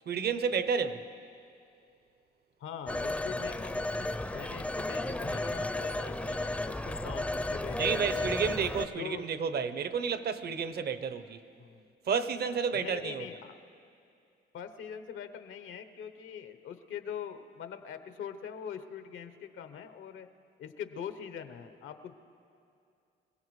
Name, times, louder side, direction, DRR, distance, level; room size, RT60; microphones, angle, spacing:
voice 1, 0.1-1.1 6.8-7.1 7.8-11.4 12.0-13.3, right 6 dB, 55° right, 0.8 m, -31 dB
voice 2, 2.6-8.4 9.0-9.3 11.6-11.9 12.7-13.5 14.5-20.3 20.6-22.1, left 8 dB, 80° left, 0.9 m, -43 dB
Telephone, 2.9-8.9, left 1 dB, 5° left, 0.5 m, -33 dB
26.5 x 16.5 x 3.2 m
cardioid pair, 90°, 20 cm